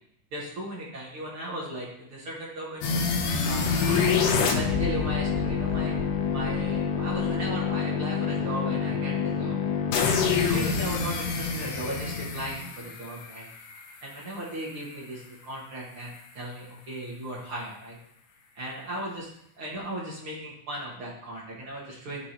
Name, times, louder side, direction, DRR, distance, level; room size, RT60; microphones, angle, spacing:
voice 1, 0.3-3.0 3.4-5.9 6.3-9.6 10.0-13.5 14.0-18.0 18.5-19.3 19.6-22.3, right 1 dB, 50° right, -6 dB, 1.7 m, -36 dB
sound 1, 2.8-13.8, left 6 dB, 75° left, 2.1 m, -27 dB
11.5 x 3.8 x 2.9 m, 0.75 s
omnidirectional pair, 4.4 m